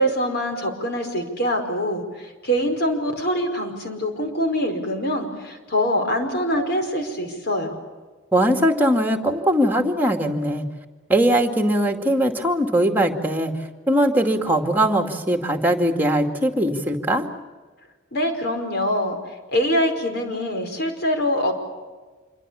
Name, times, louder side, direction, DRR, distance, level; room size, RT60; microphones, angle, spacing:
voice 1, 0.0-7.8 18.1-19.2 19.5-21.5, equal, 55° left, 5 dB, 5.1 m, -24 dB
voice 2, 8.3-10.7 11.1-13.5 13.9-17.3, right 1 dB, 10° right, 4 dB, 2.4 m, -20 dB
27.5 x 24.5 x 7.1 m, 1.4 s
head